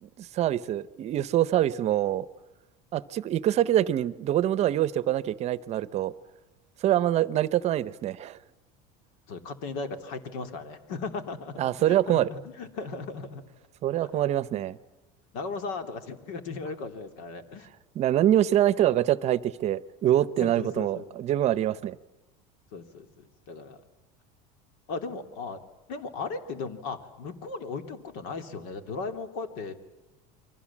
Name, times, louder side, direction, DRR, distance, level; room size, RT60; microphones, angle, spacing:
voice 1, 0.0-2.3 2.9-6.1 6.8-8.4 11.6-12.3 13.8-14.8 18.0-22.0, right 12 dB, 35° right, 0.8 m, -25 dB
voice 2, 9.3-13.4 14.0-14.2 14.5-14.6 15.3-17.7 20.4-21.1 22.7-23.8 24.9-25.6 25.9-29.7, left 4 dB, 75° left, 3.2 m, -37 dB
29.5 x 23.5 x 7.4 m
cardioid pair, 150°, 18 cm